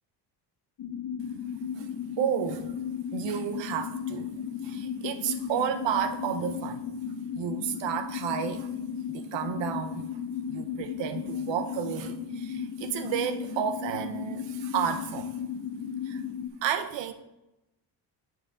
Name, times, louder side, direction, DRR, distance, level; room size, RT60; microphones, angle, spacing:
sound 1, 0.8-16.5, left 8 dB, 50° left, 0.9 m, -35 dB
voice 1, 2.2-2.7 3.1-4.3 4.6-6.9 7.4-8.7 9.1-10.1 10.5-15.3 16.0-16.2 16.6-17.1, right 9 dB, 80° right, 0.7 m, -31 dB
8.7 x 7.2 x 3.6 m
cardioid pair, 90°, 43 cm